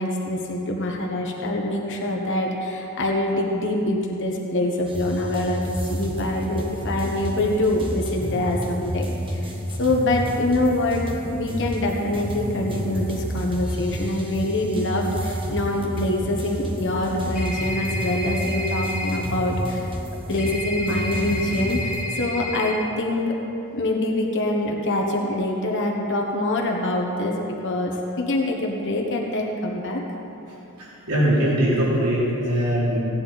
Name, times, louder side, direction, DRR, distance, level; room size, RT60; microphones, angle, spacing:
voice 1, 0.0-9.5 9.8-19.9 20.3-23.4 23.7-27.4 27.6-30.0, left 1 dB, 55° left, 0 dB, 1.2 m, -25 dB
sound 1, 4.9-22.0, equal, 25° right, 1.2 m, -30 dB
sound 2, 17.4-19.2 20.4-22.7, left 1 dB, 5° right, 1.7 m, -31 dB
voice 2, 30.8-33.0, equal, 90° right, -7 dB, 3.2 m, -21 dB
16.5 x 9.7 x 4.1 m, 3.0 s
head